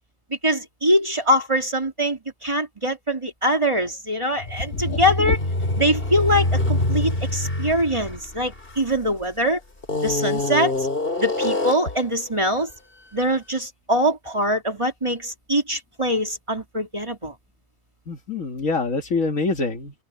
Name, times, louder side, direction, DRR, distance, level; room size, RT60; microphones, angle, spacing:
voice 1, 0.4-5.4 5.8-9.6 10.0-10.7 11.2-12.7 13.1-17.3, equal, 20° right, 2.7 m, -23 dB
sound 1, 4.4-9.2 9.8-12.0, left 2 dB, 40° left, 3.9 m, -25 dB
voice 2, 4.9-5.3 18.1-19.9, left 3 dB, 60° left, 2.1 m, -25 dB
open air
omnidirectional pair, 1.5 m